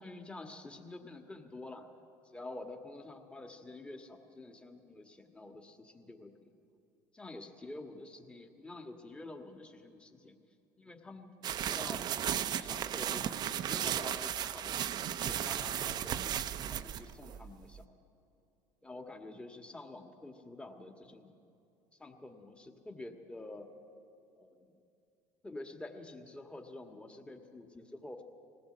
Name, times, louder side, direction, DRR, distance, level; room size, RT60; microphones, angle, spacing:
voice 1, 0.0-1.9 2.2-6.5 7.1-10.4 10.8-12.0 12.5-16.3 16.7-17.9 18.8-21.3 21.9-23.7 24.4-24.8 25.4-28.2, left 2 dB, 10° left, 5 dB, 1.6 m, -48 dB
sound 1, 11.4-17.8, right 10 dB, 45° right, 0.7 m, -35 dB
20.0 x 16.5 x 7.9 m, 2.7 s
supercardioid pair, 105°, 10 cm